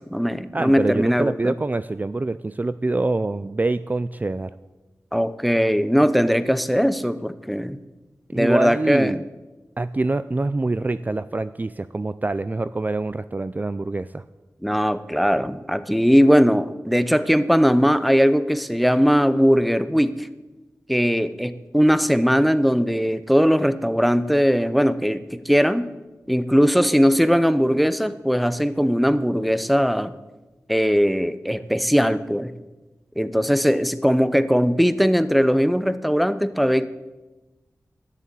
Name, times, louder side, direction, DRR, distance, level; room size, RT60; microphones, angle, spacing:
voice 1, 0.0-1.5 5.1-7.8 8.3-9.2 14.6-20.3 20.9-25.9 26.3-30.1 30.7-32.5 33.2-36.9, equal, ahead, 14 dB, 0.7 m, -19 dB
voice 2, 0.5-4.5 8.3-9.2 9.8-14.2, right 2 dB, 30° right, 14 dB, 0.4 m, -25 dB
11.0 x 9.8 x 8.4 m, 1.1 s
wide cardioid pair, 65°, 6 cm